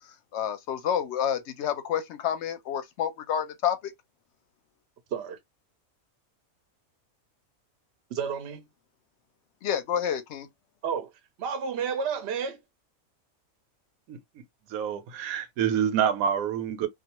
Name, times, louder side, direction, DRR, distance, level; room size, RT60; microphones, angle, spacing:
voice 1, 0.0-3.9 9.6-10.5, left 9 dB, 65° left, 0.8 m, -29 dB
voice 2, 8.1-8.6 10.8-11.1 11.4-12.6, right 6 dB, 60° right, 0.7 m, -31 dB
voice 3, 14.7-16.9, right 8 dB, 90° right, 1.0 m, -27 dB
2.4 x 2.3 x 2.9 m
omnidirectional pair, 1.4 m